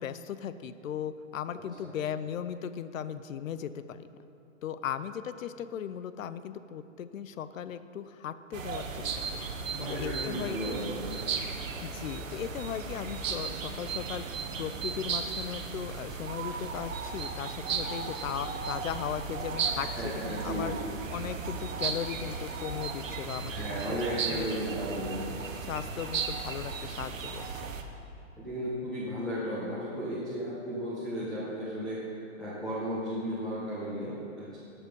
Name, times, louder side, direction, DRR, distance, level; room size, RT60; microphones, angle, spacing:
voice 1, 0.0-4.1 4.6-9.1 9.9-10.8 11.8-14.2 14.6-19.9 20.3-20.7 21.1-24.0 24.3-24.5 25.7-27.4, left 9 dB, 85° left, 13 dB, 0.6 m, -37 dB
sound 1, 8.5-27.8, right 5 dB, 85° right, 1.2 m, -36 dB
voice 2, 9.7-11.3 19.7-20.9 23.4-25.5 28.4-32.0 32.4-34.6, equal, ahead, -11 dB, 1.3 m, -35 dB
11.5 x 7.1 x 5.4 m, 2.7 s
hypercardioid pair, 160°, 39 cm